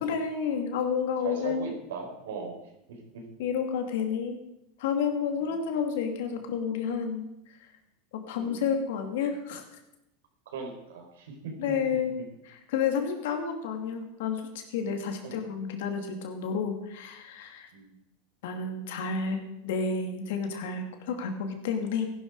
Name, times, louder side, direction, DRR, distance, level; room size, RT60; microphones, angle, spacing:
voice 1, 0.0-1.6 3.4-4.4 4.8-7.7 8.1-9.6 11.6-12.2 12.4-17.7 18.4-22.1, left 6 dB, 75° left, 5 dB, 2.6 m, -30 dB
voice 2, 1.2-2.6 3.1-3.2 5.4-5.5 8.3-8.6 10.5-11.7 15.2-15.3 17.7-17.9, right 5 dB, 85° right, 1 dB, 4.4 m, -38 dB
15.0 x 11.5 x 4.9 m, 0.86 s
supercardioid pair, 125°, 0 cm